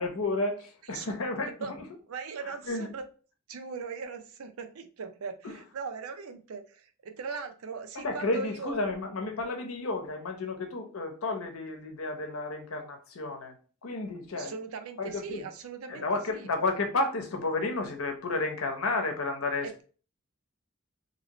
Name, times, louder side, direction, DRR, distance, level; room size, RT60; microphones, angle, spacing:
voice 1, 0.0-1.5 2.4-2.9 5.4-5.5 7.9-13.5 13.8-14.5 15.0-15.4 15.9-19.8, left 2 dB, 85° left, 0.8 m, -32 dB
voice 2, 2.1-3.0 3.5-8.8 14.3-16.0 16.3-16.5 19.6-19.8, right 5 dB, 85° right, 0.5 m, -39 dB
2.8 x 2.8 x 2.9 m
head